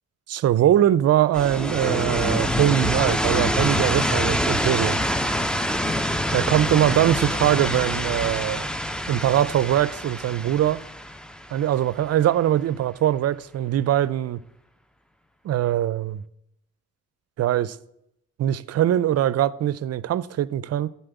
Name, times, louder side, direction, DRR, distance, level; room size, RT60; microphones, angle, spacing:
voice 1, 0.3-5.0 6.3-8.7 9.1-10.8 11.5-14.4 15.4-16.2 17.4-17.8 18.4-20.9, right 12 dB, 55° right, 0.5 m, -22 dB
sound 1, 1.3-12.1, equal, 5° left, 0.5 m, -25 dB
13.0 x 4.3 x 8.1 m
cardioid pair, 90°, 30 cm